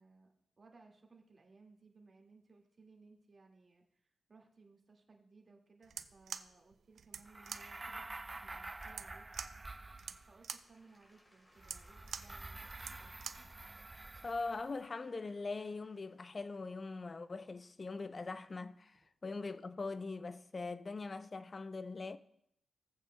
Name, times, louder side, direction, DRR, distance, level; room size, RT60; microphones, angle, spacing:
voice 1, 0.0-8.1 8.4-9.5 10.3-13.1, right 3 dB, 45° right, 1.9 m, -63 dB
sound 1, 5.8-13.5, right 7 dB, 75° right, 0.4 m, -48 dB
sound 2, 7.2-10.5 11.6-14.7, right 2 dB, 25° right, 0.5 m, -48 dB
Applause / Crowd, 9.9-18.8 19.4-19.5, equal, 15° left, 3.8 m, -69 dB
voice 2, 14.2-22.2, left 3 dB, 40° left, 0.5 m, -42 dB
17.5 x 7.9 x 2.2 m
cardioid pair, 75°, 0 cm